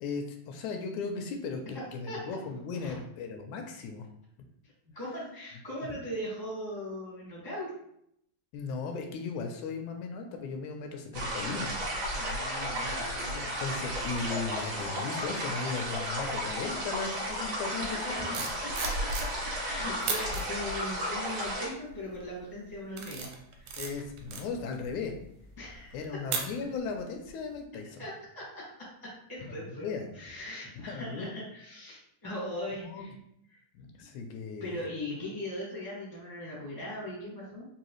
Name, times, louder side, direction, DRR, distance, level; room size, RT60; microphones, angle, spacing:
voice 1, 0.0-4.1 8.5-11.7 13.4-18.5 23.8-25.1 25.9-28.0 29.5-30.1 30.9-31.4 32.8-33.1 33.7-34.9, left 4 dB, 80° left, 4 dB, 1.8 m, -37 dB
voice 2, 4.9-7.7 12.1-13.8 17.7-18.4 18.8-19.1 19.6-23.3 23.6-23.8 25.6-26.0 26.6-26.7 28.0-33.1 33.5-33.6 34.6-37.7, left 1 dB, 20° right, -8 dB, 0.6 m, -39 dB
sound 1, 11.1-21.7, equal, 55° right, 1.5 m, -34 dB
sound 2, 18.1-19.6 20.0-20.4 21.1-21.4 21.9-22.3 22.7-27.0 27.3-27.5, right 5 dB, 85° right, 1.9 m, -37 dB
4.7 x 2.8 x 3.0 m, 0.73 s
omnidirectional pair, 3.4 m